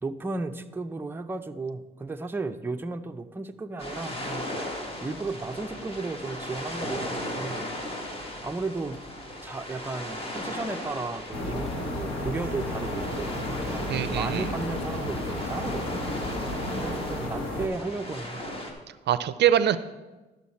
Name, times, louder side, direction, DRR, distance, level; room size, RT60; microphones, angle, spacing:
voice 1, 0.0-4.5 5.0-7.7 8.4-9.0 9.4-13.3 13.6-16.0 16.8-18.4, right 3 dB, 10° right, 6 dB, 0.5 m, -34 dB
sound 1, 3.8-18.7, left 1 dB, 30° left, 1.8 m, -37 dB
sound 2, 11.3-17.7, left 1 dB, 85° left, 1.7 m, -32 dB
voice 2, 13.9-14.5 19.1-19.8, right 10 dB, 60° right, 14 dB, 0.4 m, -23 dB
12.0 x 6.4 x 4.2 m, 1.1 s
cardioid pair, 90°, 20 cm